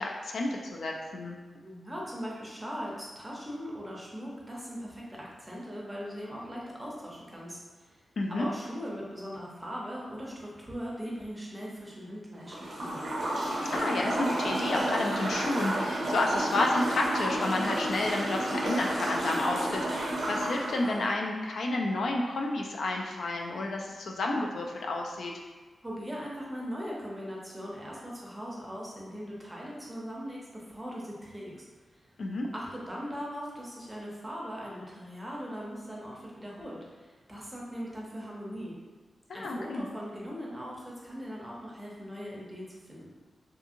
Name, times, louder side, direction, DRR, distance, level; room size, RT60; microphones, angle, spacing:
voice 1, 0.0-1.4 8.2-8.5 13.7-25.3 32.2-32.5 39.3-39.9, left 2 dB, 75° left, 0 dB, 0.3 m, -30 dB
voice 2, 1.6-8.0 8.3-13.0 25.8-31.6 31.9-32.1 32.5-38.8 39.3-43.1, equal, 10° right, -4 dB, 0.6 m, -40 dB
sound 1, 12.4-21.1, right 1 dB, 65° right, 0.5 m, -31 dB
2.7 x 2.6 x 2.5 m, 1.4 s
wide cardioid pair, 140°, 0 cm